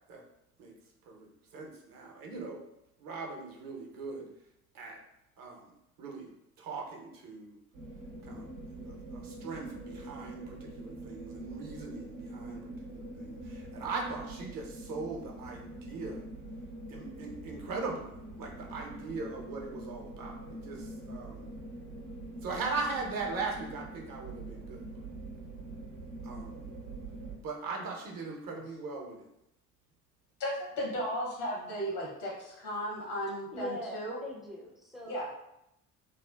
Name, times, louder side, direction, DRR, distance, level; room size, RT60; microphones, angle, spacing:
voice 1, 1.1-2.6 3.0-4.3 4.7-5.0 5.4-5.7 6.0-6.3 6.6-7.6 8.3-8.5 8.8-12.6 12.9-16.2 16.9-18.1 18.4-21.4 22.4-25.0 26.2-26.6 27.4-29.3, right 4 dB, 45° right, 0 dB, 0.7 m, -40 dB
sound 1, 7.7-27.4, right 2 dB, 80° right, 0.7 m, -44 dB
voice 2, 30.4-33.7 33.9-34.1 35.0-35.3, equal, 80° left, -3 dB, 0.8 m, -35 dB
voice 3, 33.5-35.3, equal, ahead, -2 dB, 0.3 m, -42 dB
2.6 x 2.1 x 2.2 m, 0.84 s
figure-of-eight pair, 50°, 47 cm